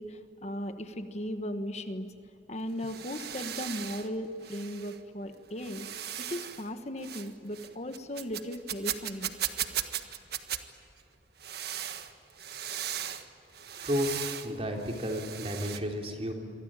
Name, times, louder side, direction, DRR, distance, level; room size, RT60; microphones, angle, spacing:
voice 1, 0.0-2.1 2.5-5.9 6.2-9.3, equal, 40° left, 9 dB, 1.3 m, -37 dB
sound 1, 2.6-4.1 4.4-5.0 5.6-6.7 7.0-7.3 7.5-10.6 11.4-13.2 13.5-14.5 14.8-15.8, right 10 dB, 65° right, 1.6 m, -37 dB
voice 2, 13.8-14.1 14.4-16.3, equal, 35° right, 2 dB, 3.7 m, -32 dB
28.0 x 23.5 x 9.0 m, 2.7 s
head